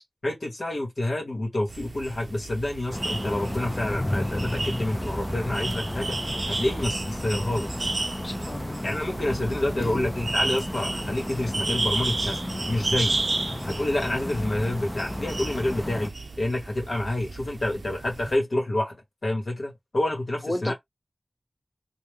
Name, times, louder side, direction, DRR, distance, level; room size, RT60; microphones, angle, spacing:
voice 1, 0.2-6.2 6.5-7.7 8.8-12.4 12.7-13.2 13.6-16.1 16.4-19.0 19.2-20.7, left 1 dB, 70° left, 1.0 m, -28 dB
sound 1, 1.7-18.4, right 2 dB, 65° right, 0.4 m, -33 dB
sound 2, 2.9-16.1, left 1 dB, 15° left, 0.3 m, -32 dB
voice 2, 8.2-8.8 9.8-10.0 20.4-20.7, left 1 dB, 40° left, 1.1 m, -33 dB
3.2 x 2.2 x 3.4 m
wide cardioid pair, 70°, 0 cm